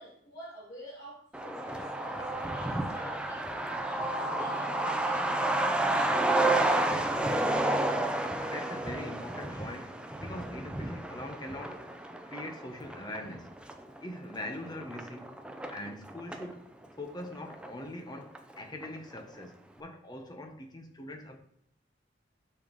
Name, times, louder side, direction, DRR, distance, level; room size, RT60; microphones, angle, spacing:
voice 1, 0.0-6.2, equal, 65° left, 2.1 m, -49 dB
Truck, 1.3-16.5 16.8-16.9 17.2-18.1 18.4-18.5 18.8-19.2, right 1 dB, 5° right, 0.5 m, -31 dB
voice 2, 8.4-11.8 12.2-13.6 14.0-15.3 15.7-16.6 17.0-21.4, left 1 dB, 20° left, 0.9 m, -42 dB
6.8 x 6.2 x 4.0 m
head